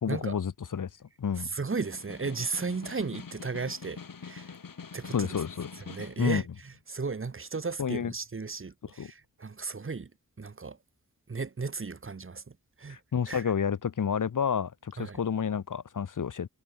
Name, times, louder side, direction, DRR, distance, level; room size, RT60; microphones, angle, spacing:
voice 1, 0.0-0.9 1.2-1.5 5.1-5.7 6.2-6.4 7.8-8.1 9.0-9.1 12.9-16.5, left 7 dB, 65° left, 0.9 m, -30 dB
voice 2, 1.4-4.5 4.9-5.3 5.9-10.1 10.4-10.8 11.3-12.4 12.8-13.0 13.3-13.4 15.0-15.2, right 4 dB, 40° right, 1.1 m, -35 dB
Snare drum, 1.6-6.3, left 6 dB, 85° left, 3.0 m, -45 dB
wide cardioid pair, 55°, 33 cm